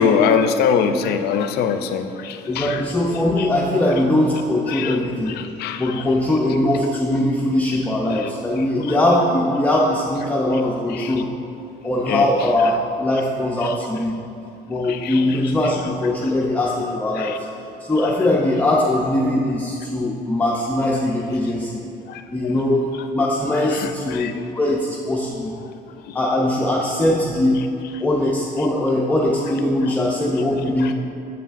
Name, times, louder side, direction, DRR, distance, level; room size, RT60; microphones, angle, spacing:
voice 1, 0.0-2.8 4.7-5.0 5.3-6.0 8.1-8.3 10.9-11.1 12.1-12.3 13.6-13.8 14.8-15.3 17.2-17.4 22.1-22.5 23.7-24.3 26.1-26.2 30.8-30.9, left 6 dB, 70° left, 8 dB, 0.4 m, -23 dB
voice 2, 2.5-5.4 5.8-11.3 11.8-14.1 14.7-17.5 17.9-21.8 22.3-25.5 26.1-27.6 28.0-30.9, left 1 dB, 10° left, -4 dB, 0.5 m, -21 dB
7.2 x 5.7 x 2.4 m, 2.6 s
cardioid pair, 110°, 17 cm